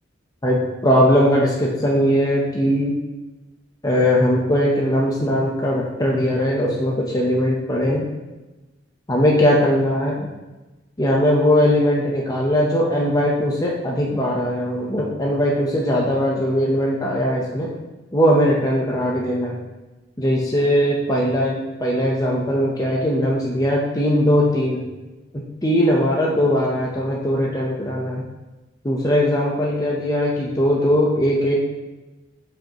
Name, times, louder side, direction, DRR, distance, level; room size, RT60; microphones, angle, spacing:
voice 1, 0.4-3.0 3.8-8.1 9.1-10.3 11.0-17.7 18.1-19.6 20.2-24.8 25.3-28.3 28.8-31.6, equal, 20° left, -3 dB, 0.8 m, -20 dB
7.3 x 5.5 x 3.0 m, 1.1 s
head